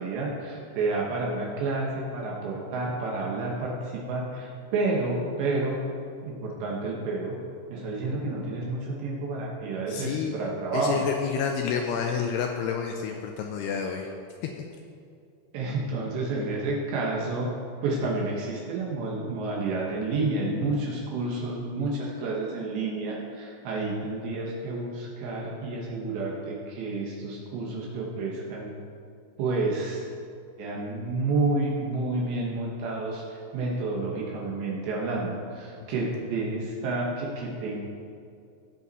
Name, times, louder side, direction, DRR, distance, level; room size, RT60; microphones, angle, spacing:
voice 1, 0.0-5.8 6.2-7.4 7.7-11.1 15.5-17.5 17.8-28.7 29.4-30.0 30.6-37.8, right 3 dB, 75° right, -3 dB, 3.4 m, -30 dB
voice 2, 9.9-10.4 10.7-14.1 14.4-14.6, left 7 dB, 90° left, 3 dB, 2.4 m, -29 dB
16.5 x 7.3 x 4.1 m, 2.4 s
omnidirectional pair, 5.3 m